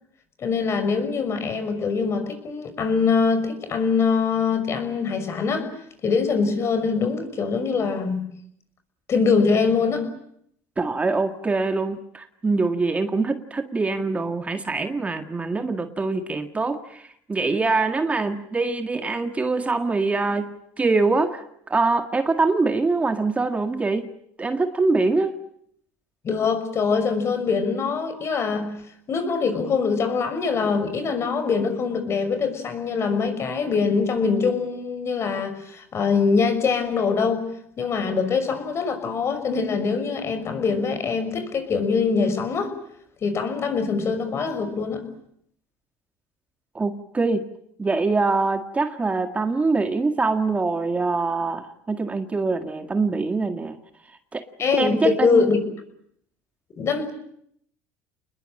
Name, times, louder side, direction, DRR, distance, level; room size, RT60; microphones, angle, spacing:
voice 1, 0.4-5.7 6.0-8.3 9.1-10.1 26.2-28.8 29.1-37.5 37.8-42.8 43.2-45.1 54.6-55.6 56.8-57.1, left 5 dB, 40° left, 9 dB, 6.1 m, -23 dB
voice 2, 10.8-24.1 24.4-25.4 46.7-47.4 47.8-53.8 54.3-54.4 54.7-55.5, right 3 dB, 20° right, 7 dB, 1.9 m, -24 dB
28.0 x 20.5 x 8.9 m, 0.71 s
supercardioid pair, 95°, 7 cm